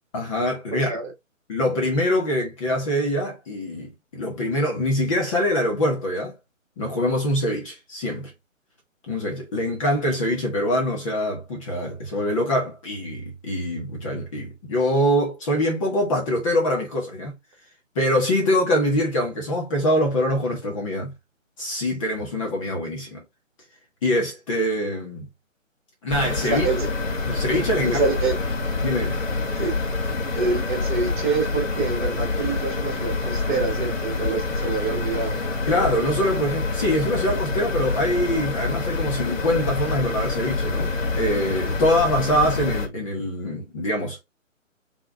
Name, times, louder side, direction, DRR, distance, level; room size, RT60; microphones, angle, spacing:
voice 1, 0.1-1.0 1.5-6.3 6.8-8.3 9.1-17.3 17.9-21.1 21.6-23.2 24.0-25.3 26.0-26.6 27.3-28.0 28.8-29.2 35.7-44.2, left 1 dB, 25° left, 1.4 m, -24 dB
voice 2, 0.7-1.1 26.4-26.9 27.8-28.3 29.6-29.7 30.3-35.4, right 4 dB, 35° right, 1.6 m, -26 dB
sound 1, 26.1-42.9, left 3 dB, 70° left, 1.9 m, -26 dB
4.6 x 3.5 x 2.4 m
hypercardioid pair, 160°, 40 cm